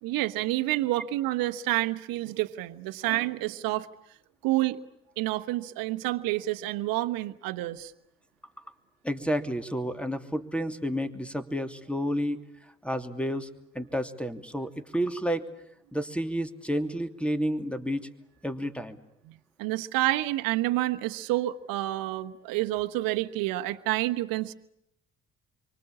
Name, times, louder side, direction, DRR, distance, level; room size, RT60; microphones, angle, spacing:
voice 1, 0.0-3.9 4.4-4.8 5.2-7.9 19.6-24.5, right 17 dB, 75° right, 11 dB, 1.1 m, -28 dB
voice 2, 9.0-12.4 12.8-13.5 13.7-15.4 15.9-18.1 18.4-19.0, equal, 5° left, 8 dB, 2.9 m, -30 dB
28.0 x 24.0 x 8.6 m, 0.77 s
hypercardioid pair, 50°, 35 cm